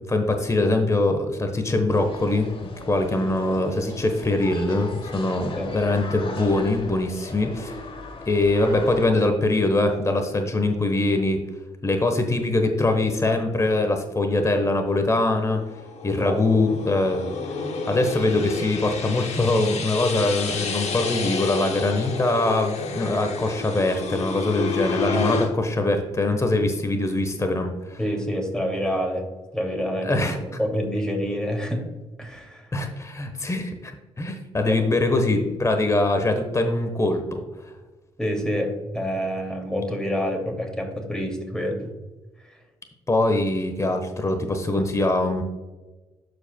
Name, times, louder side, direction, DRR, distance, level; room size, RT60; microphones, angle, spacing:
voice 1, 0.1-7.8 8.3-11.4 11.8-15.6 16.0-17.3 17.9-28.0 30.0-30.4 32.7-33.9 34.2-37.4 43.1-45.4, left 2 dB, 25° left, 6 dB, 1.2 m, -23 dB
sound 1, 1.9-9.1, left 2 dB, 45° left, 1.2 m, -38 dB
sound 2, 15.4-25.5, left 4 dB, 65° left, 1.0 m, -30 dB
voice 2, 28.0-29.3 29.5-31.8 32.2-32.8 34.7-34.9 38.2-41.9, equal, 5° left, 2 dB, 2.5 m, -27 dB
12.5 x 5.0 x 2.3 m, 1.2 s
hypercardioid pair, 50°, 12 cm